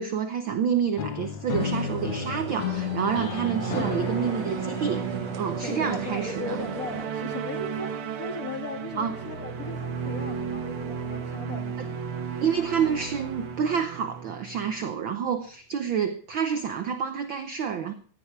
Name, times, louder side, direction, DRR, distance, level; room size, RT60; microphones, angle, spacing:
voice 1, 0.0-5.1 5.4-6.6 9.0-9.1 11.8-11.9 12.4-17.9, right 7 dB, 70° right, 1.2 m, -28 dB
sound 1, 1.0-6.9, left 8 dB, 75° left, 2.4 m, -34 dB
sound 2, 1.5-7.1, right 6 dB, 90° right, 3.3 m, -37 dB
sound 3, 2.8-15.3, right 6 dB, 55° right, 2.0 m, -34 dB
voice 2, 5.6-12.0, left 5 dB, 35° left, 1.7 m, -37 dB
15.5 x 11.5 x 4.7 m
omnidirectional pair, 3.3 m